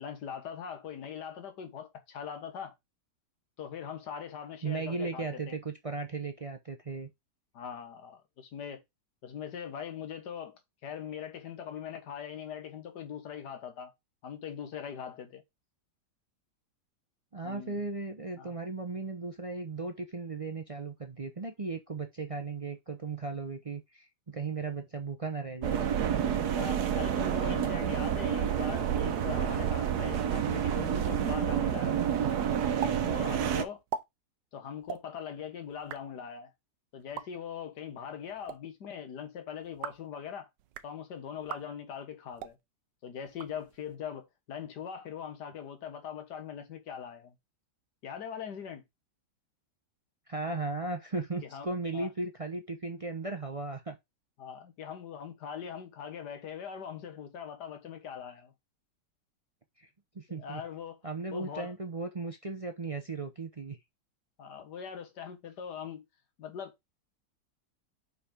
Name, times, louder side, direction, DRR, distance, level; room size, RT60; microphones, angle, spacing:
voice 1, 0.0-2.7 3.6-5.5 7.5-8.8 9.2-13.9 14.2-15.4 17.4-17.8 18.4-18.5 26.5-32.1 33.1-33.8 34.5-36.5 36.9-40.5 40.8-42.6 43.0-47.3 48.0-48.8 51.4-51.7 51.9-52.1 54.4-58.5 60.3-61.0 61.3-61.7 64.4-66.0 66.4-66.7, left 8 dB, 70° left, 1.9 m, -41 dB
voice 2, 4.6-7.1 17.3-25.9 50.3-54.0 59.8-59.9 60.1-60.6 61.0-63.8, right 3 dB, 45° right, 0.4 m, -36 dB
sound 1, 25.6-33.6, right 9 dB, 65° right, 1.3 m, -29 dB
sound 2, 32.8-33.0 33.2-33.3 33.7-34.0 34.8-35.0 35.7-36.0 37.0-37.3 38.3-38.6 39.6-40.1 40.6-40.9 41.4-41.6 42.3-42.6 43.3-44.0, right 8 dB, 85° right, 1.3 m, -40 dB
5.3 x 4.9 x 5.0 m
omnidirectional pair, 1.9 m